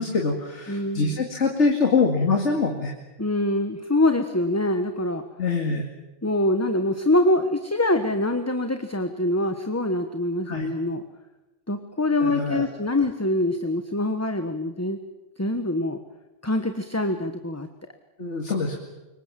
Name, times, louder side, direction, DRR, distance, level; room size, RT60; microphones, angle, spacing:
voice 1, 0.0-2.9 5.4-5.9 10.5-10.7 12.2-12.6 18.2-18.8, left 4 dB, 70° left, 2 dB, 2.6 m, -24 dB
voice 2, 0.7-1.2 3.2-5.2 6.2-11.0 11.7-15.0 15.4-16.0 16.4-17.7, left 1 dB, 15° left, 7 dB, 1.2 m, -24 dB
26.0 x 23.5 x 7.5 m, 1.1 s
omnidirectional pair, 1.2 m